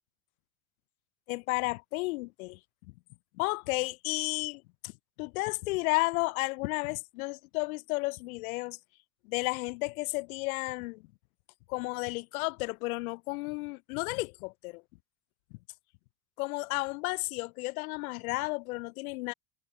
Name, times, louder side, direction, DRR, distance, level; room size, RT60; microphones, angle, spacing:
voice 1, 1.3-2.6 3.4-4.9 5.2-8.8 9.2-11.0 11.7-14.8 16.4-19.3, left 24 dB, 65° left, 0.7 m, -32 dB
hypercardioid pair, 105°, 46 cm